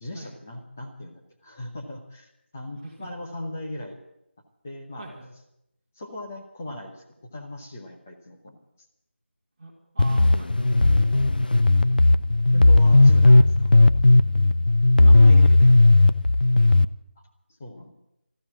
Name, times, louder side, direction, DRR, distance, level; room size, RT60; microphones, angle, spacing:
voice 1, 0.0-4.0 4.6-5.1 5.9-7.0 7.3-8.6 12.5-13.7 17.6-18.0, left 1 dB, 10° left, 0 dB, 0.9 m, -38 dB
voice 2, 5.0-5.3 9.6-10.8 15.0-15.9, right 2 dB, 15° right, -4 dB, 2.5 m, -42 dB
sound 1, 10.0-16.8, left 2 dB, 50° left, 0.5 m, -16 dB
14.0 x 13.0 x 7.4 m, 0.84 s
figure-of-eight pair, 180°, 7 cm